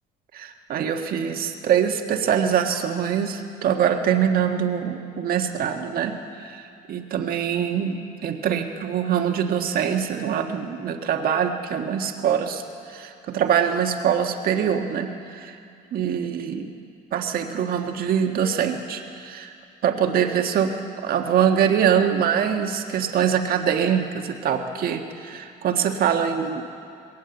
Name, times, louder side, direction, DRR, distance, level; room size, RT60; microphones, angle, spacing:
voice 1, 0.3-6.6 6.9-12.6 12.9-15.6 15.9-16.7 17.1-19.5 19.8-26.6, right 8 dB, 60° right, 4 dB, 1.6 m, -24 dB
20.5 x 18.5 x 8.0 m, 2.5 s
cardioid pair, 110°, 17 cm